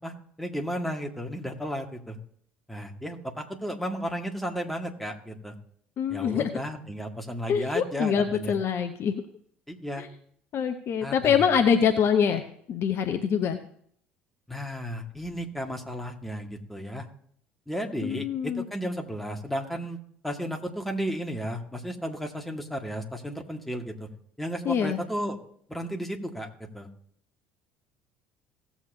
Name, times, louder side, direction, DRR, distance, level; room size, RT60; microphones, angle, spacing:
voice 1, 0.0-2.2 2.7-5.5 6.1-8.5 9.7-10.1 11.0-11.5 14.5-17.1 17.7-20.0 20.2-24.1 24.4-25.4 25.7-26.5 26.7-26.9, equal, ahead, 1 dB, 1.8 m, -34 dB
voice 2, 6.0-6.4 7.5-9.1 10.5-12.4 12.7-13.6 18.0-18.6 24.6-25.0, left 7 dB, 40° left, 7 dB, 0.8 m, -24 dB
17.0 x 7.3 x 2.7 m, 0.64 s
figure-of-eight pair, 60°, 6 cm